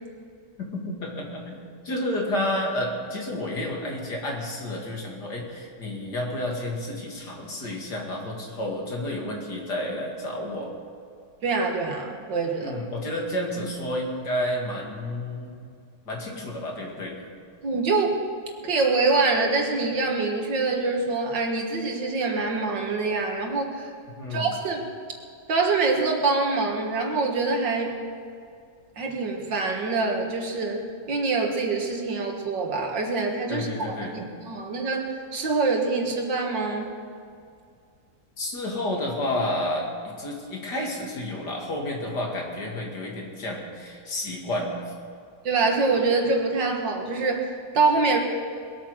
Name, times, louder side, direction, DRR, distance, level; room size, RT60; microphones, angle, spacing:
voice 1, 0.6-10.7 12.6-15.6 16.1-17.2 24.1-24.5 33.5-34.2 38.4-44.9, left 1 dB, 65° left, -1 dB, 3.0 m, -30 dB
voice 2, 11.4-12.8 17.6-18.2 18.6-23.9 24.3-24.8 25.5-28.0 29.0-36.9 45.4-48.2, right 3 dB, 80° right, 2 dB, 2.4 m, -25 dB
21.0 x 8.8 x 6.5 m, 2.3 s
omnidirectional pair, 2.0 m